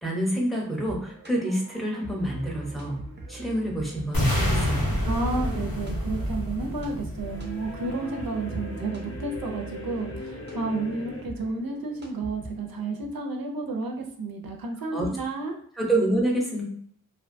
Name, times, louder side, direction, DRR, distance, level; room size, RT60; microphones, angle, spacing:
voice 1, 0.0-3.0 3.3-5.0 14.9-15.1 15.8-16.6, right 1 dB, ahead, -3 dB, 0.7 m, -27 dB
sound 1, 0.6-12.9, right 2 dB, 30° right, 0.5 m, -43 dB
sound 2, 4.1-8.2, equal, 80° left, 0.8 m, -28 dB
sound 3, 5.0-11.2, left 2 dB, 40° left, 0.6 m, -41 dB
voice 2, 5.1-15.6, right 3 dB, 90° right, 2 dB, 0.5 m, -31 dB
2.5 x 2.2 x 2.5 m, 0.63 s
wide cardioid pair, 55°, 34 cm